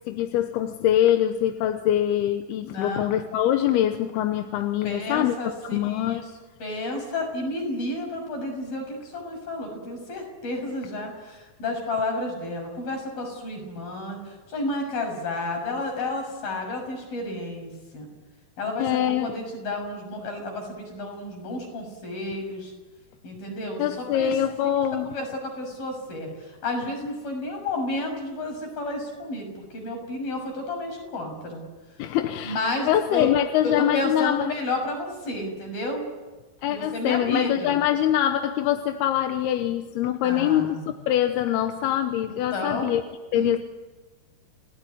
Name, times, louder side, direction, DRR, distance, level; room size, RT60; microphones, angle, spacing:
voice 1, 0.1-5.3 5.7-6.2 18.8-19.3 23.8-25.1 32.0-32.6 32.9-34.5 36.6-40.8 41.1-43.0 43.3-43.6, left 11 dB, 75° left, 7 dB, 2.9 m, -24 dB
voice 2, 2.7-3.2 4.8-6.2 6.6-18.1 18.6-22.7 23.2-24.4 25.0-31.6 32.4-33.3 33.6-36.1 36.7-37.8 40.2-40.9 42.5-42.9 43.3-43.5, left 2 dB, 60° left, 3 dB, 8.2 m, -31 dB
29.5 x 17.5 x 9.7 m, 1.2 s
omnidirectional pair, 4.9 m